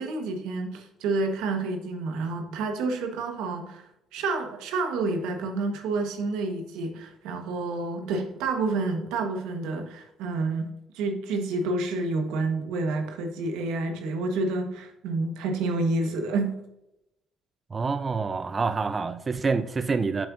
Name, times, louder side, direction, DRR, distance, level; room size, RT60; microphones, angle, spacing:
voice 1, 0.0-3.8 4.1-10.7 10.9-16.5, right 3 dB, 90° right, 4 dB, 1.3 m, -29 dB
voice 2, 17.7-20.3, right 4 dB, 30° right, 10 dB, 0.4 m, -27 dB
7.8 x 7.2 x 2.6 m, 0.86 s
cardioid pair, 85°, 0 cm